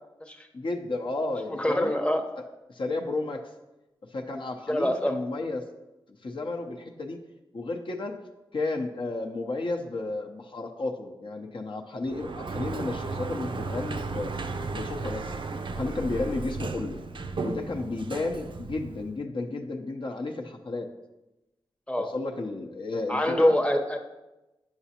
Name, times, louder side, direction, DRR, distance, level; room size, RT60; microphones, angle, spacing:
voice 1, 0.5-1.9 2.4-3.4 4.1-5.6 6.2-7.2 7.5-8.2 8.5-14.3 14.7-15.3 15.7-17.0 17.4-20.9 22.0-23.5, left 2 dB, 60° left, 2 dB, 0.7 m, -32 dB
voice 2, 1.5-2.2 4.7-5.2 21.9-22.1 23.1-24.0, equal, 10° left, 4 dB, 0.8 m, -25 dB
Sliding door, 12.1-19.2, right 3 dB, 55° right, 0.4 m, -35 dB
8.7 x 6.0 x 2.8 m, 1.0 s
cardioid pair, 60°, 10 cm